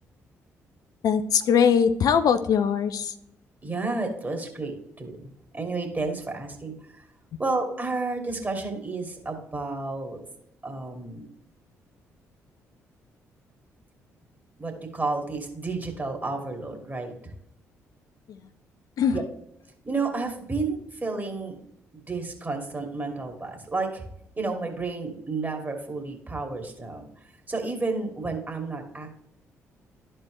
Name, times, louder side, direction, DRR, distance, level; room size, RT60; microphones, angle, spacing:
voice 1, 1.0-3.1 19.0-19.1, left 7 dB, 55° left, 10 dB, 0.6 m, -21 dB
voice 2, 3.6-5.2 5.5-7.0 7.4-10.2 10.6-11.3 14.6-17.3 19.1-19.2 19.8-21.6 21.9-24.1 24.4-27.1 27.5-29.2, right 3 dB, 25° right, 3 dB, 2.5 m, -31 dB
13.0 x 4.4 x 3.2 m, 0.76 s
figure-of-eight pair, 40°, 8 cm